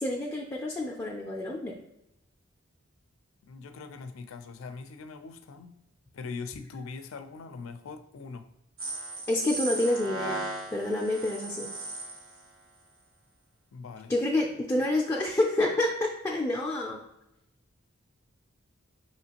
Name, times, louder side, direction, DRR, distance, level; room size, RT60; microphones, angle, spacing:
voice 1, 0.0-1.7 9.3-10.4 10.7-11.7 14.1-17.0, left 1 dB, 15° left, -2 dB, 0.4 m, -28 dB
voice 2, 3.4-5.8 6.1-8.5 13.7-14.2, left 4 dB, 85° left, 9 dB, 0.4 m, -41 dB
sound 1, 8.8-12.4, right 2 dB, 90° right, 1.0 m, -36 dB
5.0 x 3.0 x 2.9 m, 0.85 s
head